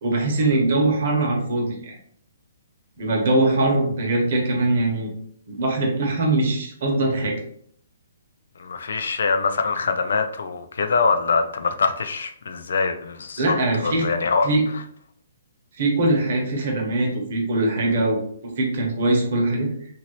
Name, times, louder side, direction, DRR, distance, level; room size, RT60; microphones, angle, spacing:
voice 1, 0.0-2.0 3.0-5.1 5.5-7.3 13.4-14.1 14.4-14.6 15.8-18.2 18.4-19.7, right 2 dB, 55° right, 0 dB, 1.1 m, -22 dB
voice 2, 8.6-13.6 13.8-14.8, left 4 dB, 75° left, 8 dB, 0.4 m, -24 dB
2.9 x 2.6 x 3.0 m, 0.63 s
hypercardioid pair, 145°, 0 cm